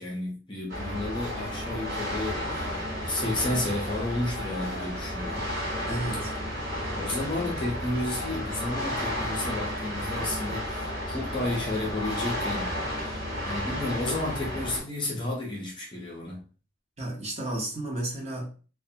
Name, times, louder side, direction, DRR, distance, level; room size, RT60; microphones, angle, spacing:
voice 1, 0.0-5.5 7.0-16.4, left 1 dB, 25° left, -2 dB, 0.5 m, -32 dB
sound 1, 0.7-14.8, equal, 45° right, 1.0 m, -32 dB
voice 2, 5.9-6.3 17.0-18.5, right 1 dB, 30° right, -2 dB, 0.7 m, -32 dB
2.5 x 2.2 x 2.6 m, 0.36 s
head